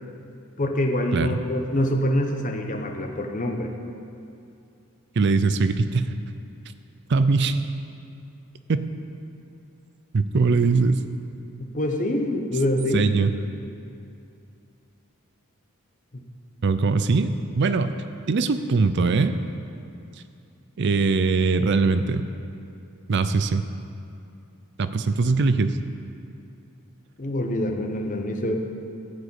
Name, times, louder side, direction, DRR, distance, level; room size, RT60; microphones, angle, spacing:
voice 1, 0.6-3.7 11.6-13.1 16.1-16.2 27.2-28.5, left 1 dB, 35° left, 3 dB, 0.9 m, -25 dB
voice 2, 5.2-6.1 7.1-7.6 8.7-8.8 10.1-11.1 12.9-13.3 16.6-17.9 18.3-19.3 20.8-22.3 23.1-23.6 24.8-25.8, right 4 dB, 50° right, 11 dB, 0.5 m, -21 dB
14.5 x 5.0 x 8.3 m, 2.6 s
head